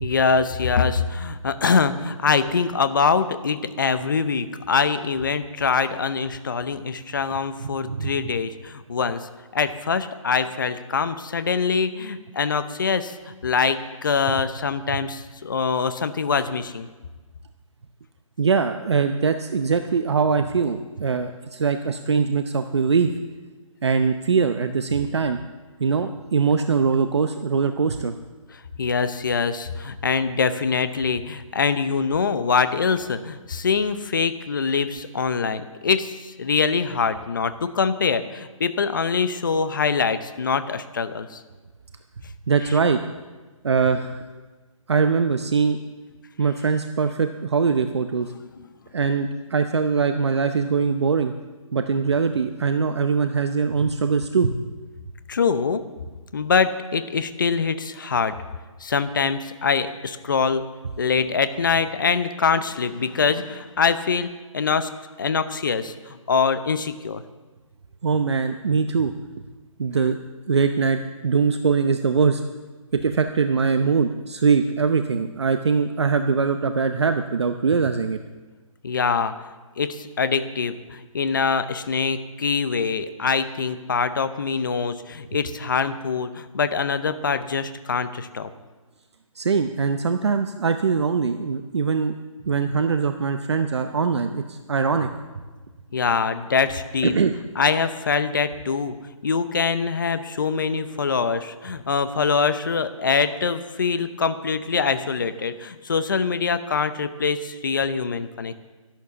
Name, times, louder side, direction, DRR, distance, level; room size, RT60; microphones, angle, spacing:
voice 1, 0.0-13.1 13.4-16.9 28.5-41.4 55.3-55.8 56.3-58.4 58.8-60.6 61.0-64.9 65.2-67.2 78.8-79.3 79.8-88.5 95.9-97.1 97.6-99.0 99.2-108.5, left 5 dB, 35° left, 12 dB, 0.7 m, -24 dB
voice 2, 7.6-8.2 18.4-23.1 23.8-25.4 25.8-28.1 42.5-43.0 43.6-44.2 44.9-45.8 46.4-48.3 48.9-51.3 51.7-54.5 68.0-69.1 69.8-70.2 70.5-72.4 72.9-78.2 89.4-92.1 92.5-95.1 97.0-97.3, right 5 dB, 50° right, 8 dB, 0.7 m, -22 dB
12.5 x 11.5 x 6.9 m, 1.3 s
hypercardioid pair, 175°, 18 cm